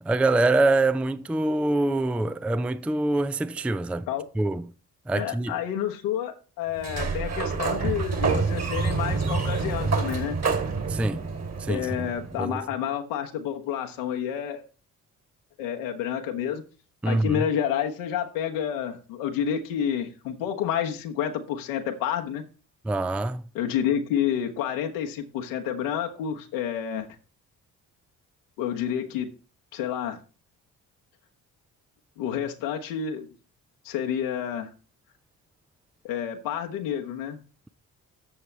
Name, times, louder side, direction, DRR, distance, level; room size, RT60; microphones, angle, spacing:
voice 1, 0.0-4.1 4.4-4.7 5.1-5.6 10.9-11.3 11.6-12.1 12.4-12.6 17.0-17.4 22.8-23.4, right 2 dB, 5° right, 0.5 m, -25 dB
voice 2, 5.1-10.4 11.7-14.6 15.6-16.6 17.0-22.4 23.5-27.1 28.6-29.3 29.7-30.2 32.2-33.3 33.8-34.7 36.0-37.4, left 9 dB, 75° left, 1.2 m, -29 dB
Sliding door, 6.7-12.4, right 4 dB, 35° right, 2.5 m, -27 dB
13.0 x 6.7 x 3.4 m
figure-of-eight pair, 40°, 45 cm